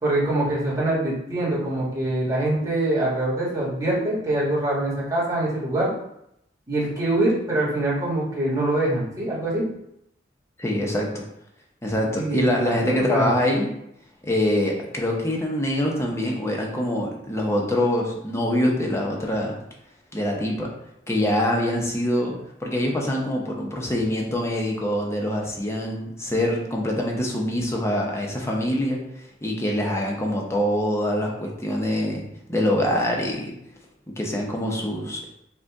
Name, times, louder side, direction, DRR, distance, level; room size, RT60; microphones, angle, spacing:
voice 1, 0.0-5.9 6.7-9.7 12.2-13.3, right 1 dB, 20° right, -7 dB, 1.6 m, -24 dB
voice 2, 10.6-11.2 11.8-13.7 14.2-19.6 20.1-20.7 21.1-29.0 29.4-32.2 32.5-33.5 34.1-35.2, left 1 dB, 15° left, -1 dB, 0.8 m, -24 dB
5.3 x 2.4 x 3.6 m, 0.77 s
head